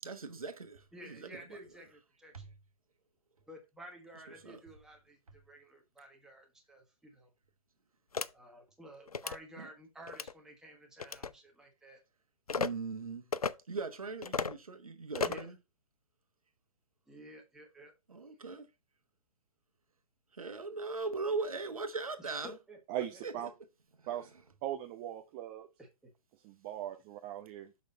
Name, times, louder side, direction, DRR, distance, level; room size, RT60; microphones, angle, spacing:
voice 1, 0.0-1.4 2.3-2.5 4.4-4.6 9.6-9.7 12.5-13.2 13.7-15.6 18.1-18.7 20.3-22.6 23.2-23.3, right 4 dB, 70° right, 1.3 m, -39 dB
voice 2, 0.9-2.4 3.5-7.3 8.3-12.0 15.2-15.5 17.1-17.9 22.2-22.8 25.8-26.1, right 1 dB, 5° right, 1.5 m, -53 dB
sound 1, 8.1-8.3 9.1-9.4 10.1-10.3 11.0-11.3 12.5-12.7 13.3-13.5 14.2-14.6 15.1-15.5, left 5 dB, 75° left, 0.5 m, -34 dB
voice 3, 22.9-23.5 24.1-24.3 24.6-25.7 26.4-27.7, right 11 dB, 20° right, 0.4 m, -39 dB
6.5 x 5.8 x 3.9 m
figure-of-eight pair, 120°, 19 cm